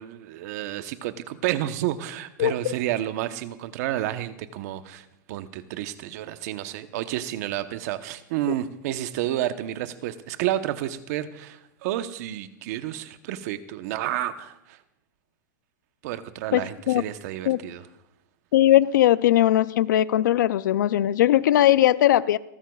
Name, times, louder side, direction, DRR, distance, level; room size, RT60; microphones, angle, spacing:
voice 1, 0.0-14.8 16.0-17.9, right 13 dB, 60° right, 11 dB, 1.0 m, -30 dB
voice 2, 2.4-2.7 16.5-17.0 17.5-17.6 18.5-22.4, left 13 dB, 80° left, 18 dB, 0.5 m, -19 dB
30.0 x 12.5 x 2.4 m, 0.82 s
supercardioid pair, 135°, 10 cm